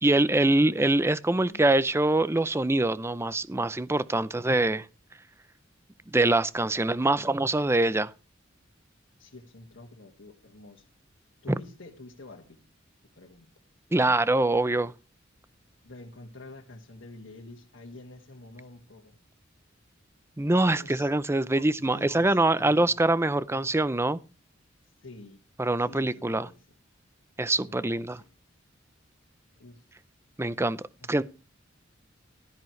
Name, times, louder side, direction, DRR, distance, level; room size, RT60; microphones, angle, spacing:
voice 1, 0.0-4.8 6.1-8.1 13.9-14.9 20.4-24.2 25.6-26.5 27.4-28.2 30.4-30.8 31.1-31.2, right 2 dB, 15° right, 0.5 m, -24 dB
voice 2, 1.3-1.7 7.0-7.3 9.2-10.9 11.4-12.6 13.2-13.5 15.8-19.2 20.7-21.1 21.4-23.1 23.5-23.7 25.0-25.4 25.8-26.6 27.6-28.3 29.6-29.8 31.0-31.2, left 2 dB, 70° left, 1.9 m, -48 dB
15.5 x 13.0 x 3.2 m
head